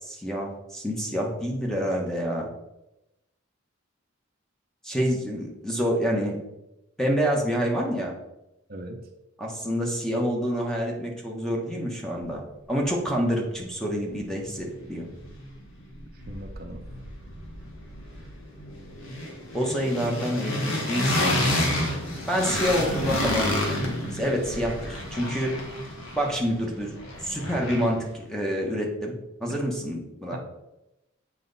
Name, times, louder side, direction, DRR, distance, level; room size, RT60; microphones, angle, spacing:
voice 1, 0.0-2.5 4.8-6.4 7.0-8.1 9.4-12.4 12.7-15.1 19.5-21.4 22.3-23.8 24.1-25.5 26.2-26.9 27.2-29.1 29.4-30.4, equal, 5° left, -1 dB, 1.2 m, -27 dB
voice 2, 8.7-9.0 16.1-16.8 30.3-30.4, right 1 dB, 45° right, 3 dB, 0.7 m, -39 dB
sound 1, 14.1-14.2 14.5-15.6 15.9-28.1, left 1 dB, 75° left, 1.5 m, -30 dB
7.5 x 4.8 x 4.1 m, 0.93 s
head